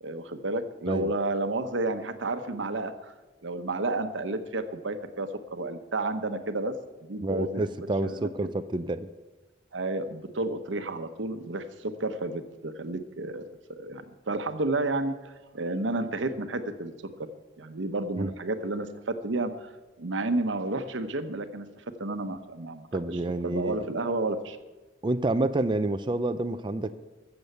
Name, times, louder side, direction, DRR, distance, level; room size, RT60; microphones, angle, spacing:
voice 1, 0.0-3.1 3.4-6.7 7.0-7.6 8.0-8.5 9.7-13.4 13.7-16.9 17.6-19.7 20.0-24.6, right 2 dB, 85° right, 9 dB, 1.0 m, -31 dB
voice 2, 7.2-9.1 18.2-18.3 22.9-23.9 25.0-26.9, right 2 dB, 25° right, 9 dB, 0.4 m, -28 dB
14.5 x 7.1 x 6.7 m, 1.2 s
head